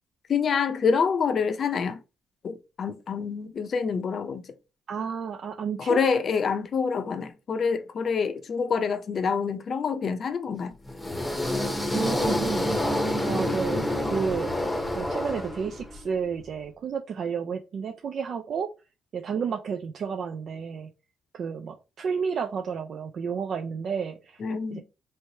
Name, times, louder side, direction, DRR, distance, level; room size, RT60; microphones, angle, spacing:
voice 1, 0.3-2.0 2.4-4.4 5.8-10.7 24.4-24.8, left 5 dB, 50° left, 0.6 m, -26 dB
voice 2, 4.9-6.0 11.9-12.8 13.2-14.5 14.9-18.7 19.1-20.9 21.3-24.4 24.7-24.8, right 6 dB, 60° right, 0.4 m, -31 dB
sound 1, 10.9-16.0, left 1 dB, 10° left, 0.8 m, -28 dB
3.3 x 3.1 x 2.7 m
cardioid pair, 90°, 0 cm